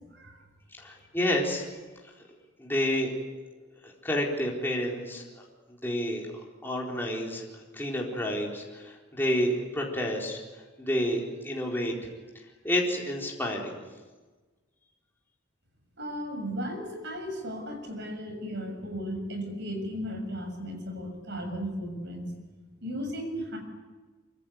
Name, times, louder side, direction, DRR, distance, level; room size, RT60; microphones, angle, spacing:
voice 1, 0.8-1.7 2.6-3.1 3.8-5.4 5.7-6.3 6.6-10.4 10.8-11.9 12.6-13.8, equal, 10° left, -2 dB, 4.2 m, -29 dB
voice 2, 16.0-22.3 22.8-23.6, equal, 55° right, 5 dB, 7.3 m, -35 dB
25.5 x 24.5 x 9.4 m, 1.3 s
head